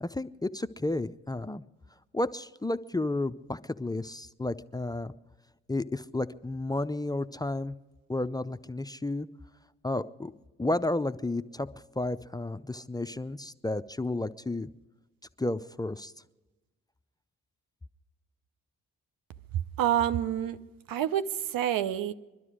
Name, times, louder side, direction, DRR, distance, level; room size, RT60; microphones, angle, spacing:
voice 1, 0.0-1.6 2.1-5.1 5.7-7.8 8.1-9.3 9.8-10.3 10.6-11.7 12.0-14.7 15.4-16.1, left 2 dB, 10° left, 12 dB, 0.5 m, -32 dB
voice 2, 19.8-20.6 20.9-22.1, right 11 dB, 65° right, 12 dB, 0.7 m, -27 dB
22.0 x 12.5 x 4.9 m, 1.1 s
hypercardioid pair, 45°, 36 cm